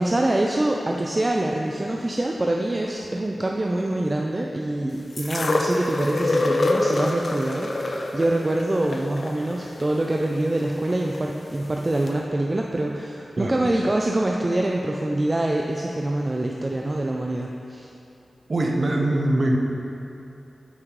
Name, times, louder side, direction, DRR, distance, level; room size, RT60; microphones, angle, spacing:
voice 1, 0.0-17.9, right 1 dB, 25° right, 0 dB, 0.4 m, -25 dB
sound 1, 5.2-11.2 12.1-12.2, left 2 dB, 50° left, 0.5 m, -26 dB
voice 2, 18.5-19.6, right 1 dB, 45° right, 0 dB, 0.8 m, -22 dB
7.2 x 5.1 x 4.6 m, 2.8 s
wide cardioid pair, 110°, 0 cm